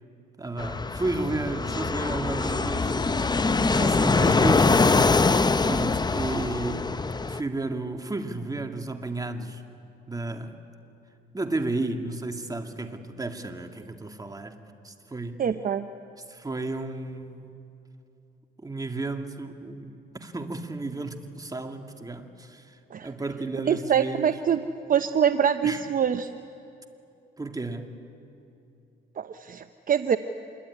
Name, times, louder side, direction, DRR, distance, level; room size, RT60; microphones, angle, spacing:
voice 1, 0.4-3.0 3.7-4.9 5.6-7.0 7.2-9.6 10.1-10.6 11.3-14.6 14.8-15.4 16.3-17.5 18.6-22.8 23.0-24.4 25.6-25.8 27.4-27.9, right 2 dB, 20° right, 2.3 m, -32 dB
Fixed-wing aircraft airplane, 0.6-7.4, left 3 dB, 20° left, 0.8 m, -23 dB
voice 2, 15.4-15.9 22.9-23.1 23.7-24.6 24.9-26.4 29.2-30.2, right 8 dB, 45° right, 0.8 m, -24 dB
26.5 x 22.5 x 9.9 m
cardioid pair, 90°, 20 cm